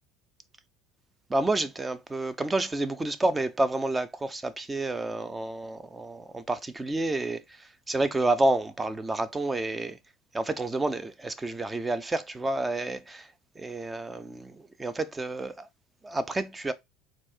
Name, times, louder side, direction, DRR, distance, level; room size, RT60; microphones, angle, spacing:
voice 1, 1.3-10.0 10.3-15.7 16.0-16.7, right 2 dB, 20° right, 0.7 m, -29 dB
4.3 x 2.6 x 4.4 m
hypercardioid pair, 80°, 0 cm